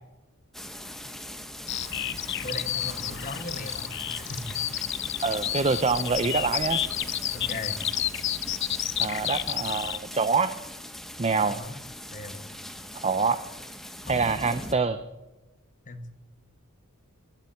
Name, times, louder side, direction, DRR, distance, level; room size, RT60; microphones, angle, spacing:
sound 1, 0.5-14.7, left 1 dB, ahead, 0.8 m, -41 dB
Bird vocalization bird call bird song, 1.7-10.0, left 11 dB, 50° left, 0.7 m, -31 dB
voice 1, 2.4-4.6 7.3-7.8 11.4-11.8 12.1-12.5 14.1-14.4 15.9-16.2, left 2 dB, 35° left, 8 dB, 1.2 m, -38 dB
voice 2, 5.2-6.8 9.0-10.5 11.2-11.6 13.0-13.4 14.1-15.0, right 4 dB, 25° right, 11 dB, 0.5 m, -25 dB
11.5 x 11.5 x 9.1 m, 1.1 s
head